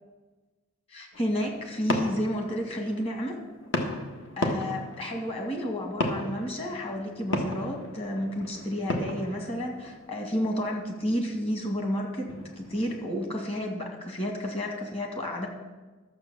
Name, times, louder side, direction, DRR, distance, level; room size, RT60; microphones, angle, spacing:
voice 1, 0.9-3.4 4.4-12.3 12.6-15.5, equal, 25° left, 2 dB, 1.8 m, -31 dB
sound 1, 1.1-13.3, left 1 dB, 60° left, 1.5 m, -36 dB
12.5 x 7.2 x 6.8 m, 1.2 s
head